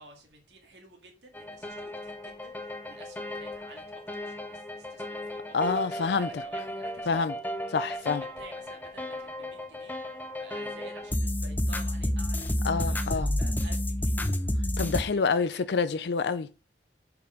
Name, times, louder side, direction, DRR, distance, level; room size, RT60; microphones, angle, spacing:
voice 1, 0.0-5.8 6.2-7.3 7.9-10.0 10.4-12.5 12.8-14.2 15.1-15.6, right 2 dB, 75° right, 2.1 m, -51 dB
sound 1, 1.3-15.0, left 1 dB, 10° left, 0.6 m, -32 dB
voice 2, 5.5-6.3 7.1-7.3 7.7-8.2 12.6-13.3 14.8-16.5, left 5 dB, 70° left, 0.4 m, -27 dB
6.9 x 4.9 x 5.0 m
head